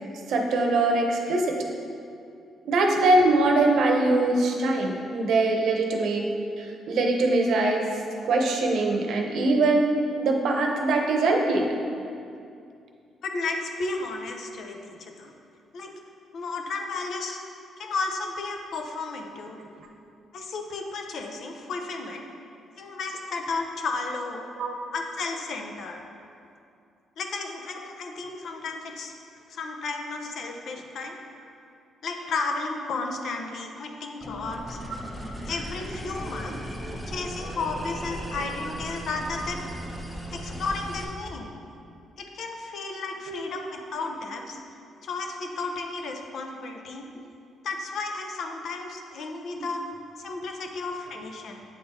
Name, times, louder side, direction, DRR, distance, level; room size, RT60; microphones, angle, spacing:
voice 1, 0.3-1.5 2.6-6.2 6.6-7.9 8.2-11.8 19.6-19.7 24.6-24.8 43.3-43.5 49.6-49.7, right 2 dB, 70° right, 2 dB, 0.8 m, -23 dB
voice 2, 13.2-15.3 15.7-15.9 16.3-17.4 17.8-19.6 20.3-22.2 22.8-24.5 24.9-26.0 27.2-29.1 29.5-31.2 32.0-34.8 35.5-36.6 37.1-39.7 40.3-41.5 42.2-44.6 45.0-47.1 47.6-49.8 50.2-51.6, left 3 dB, 65° left, 3 dB, 0.7 m, -33 dB
sound 1, 34.2-41.0, equal, 10° left, 1.0 m, -36 dB
8.2 x 3.8 x 4.2 m, 2.5 s
cardioid pair, 90°, 0 cm